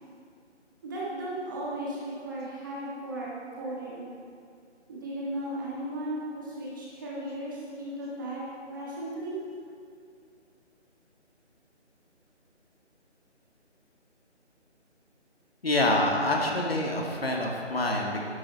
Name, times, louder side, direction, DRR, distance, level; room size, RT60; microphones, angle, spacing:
voice 1, 0.8-4.1 4.9-9.4, right 1 dB, 15° right, -6 dB, 1.5 m, -36 dB
voice 2, 15.6-18.2, left 1 dB, 55° left, 0 dB, 2.2 m, -26 dB
12.5 x 11.5 x 4.2 m, 2.4 s
figure-of-eight pair, 155°, 36 cm